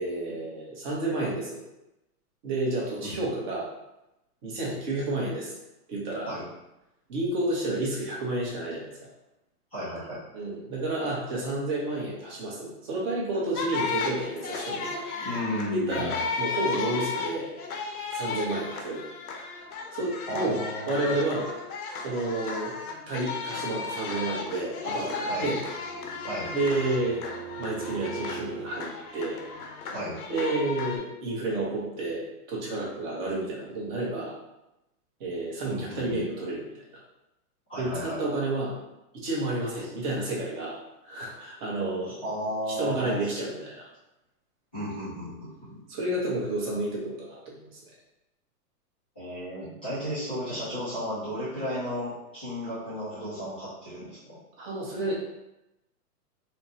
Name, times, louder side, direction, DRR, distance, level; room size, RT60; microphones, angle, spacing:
voice 1, 0.0-1.6 2.4-3.7 4.4-5.5 5.9-6.3 7.1-8.9 10.3-14.9 15.7-17.5 18.1-19.0 19.9-20.6 20.9-21.5 22.0-22.8 23.1-25.6 26.5-27.2 27.6-29.4 30.3-34.3 35.2-36.6 37.8-38.8 39.1-40.8 41.0-42.2 42.8-43.8 45.9-47.6 54.6-55.1, right 2 dB, 30° right, -4 dB, 0.9 m, -30 dB
voice 2, 9.7-10.2 15.2-16.2 20.3-21.1 25.2-25.5 26.2-26.5 29.9-30.2 35.7-36.2 37.7-38.2 39.8-39.9 42.0-43.1 44.7-45.8 49.1-54.4, equal, 10° left, -17 dB, 0.3 m, -34 dB
sound 1, 13.5-31.0, left 4 dB, 70° left, 0.7 m, -34 dB
Bowed string instrument, 25.3-28.9, right 9 dB, 70° right, 0.6 m, -42 dB
4.2 x 2.1 x 2.8 m, 0.92 s
hypercardioid pair, 150°, 47 cm